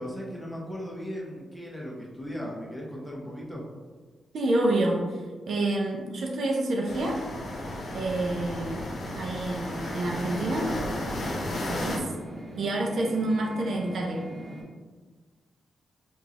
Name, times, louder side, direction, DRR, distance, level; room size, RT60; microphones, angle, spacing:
voice 1, 0.0-3.7, equal, 10° left, -3 dB, 0.9 m, -37 dB
voice 2, 4.3-5.2 5.5-7.2 7.9-8.9 9.1-10.8 11.6-12.1 12.6-14.2, right 2 dB, 70° right, 0 dB, 0.5 m, -28 dB
sound 1, 6.9-12.0, left 1 dB, 55° left, 0.7 m, -34 dB
sound 2, 9.6-14.6, equal, 25° right, 1.1 m, -41 dB
3.6 x 2.5 x 2.9 m, 1.4 s
cardioid pair, 70°, 0 cm